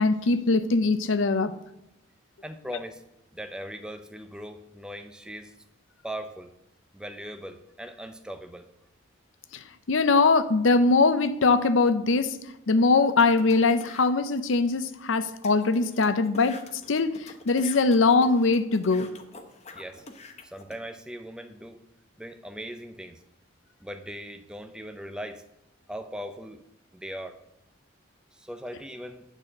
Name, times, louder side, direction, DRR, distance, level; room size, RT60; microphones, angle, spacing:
voice 1, 0.0-1.5 9.5-12.4 12.7-16.6 16.9-19.1, left 3 dB, 75° left, 0.6 m, -22 dB
voice 2, 2.4-3.0 3.3-5.5 6.0-6.5 6.9-8.7 19.7-20.0 20.4-21.9 22.2-23.2 23.8-25.4 25.9-26.6 26.9-27.4 28.3-29.2, equal, 5° right, 0.5 m, -39 dB
sound 1, 13.0-14.1 14.7-14.8 15.0-15.1 15.4-20.8, left 3 dB, 35° left, 0.8 m, -46 dB
9.0 x 4.2 x 7.3 m
head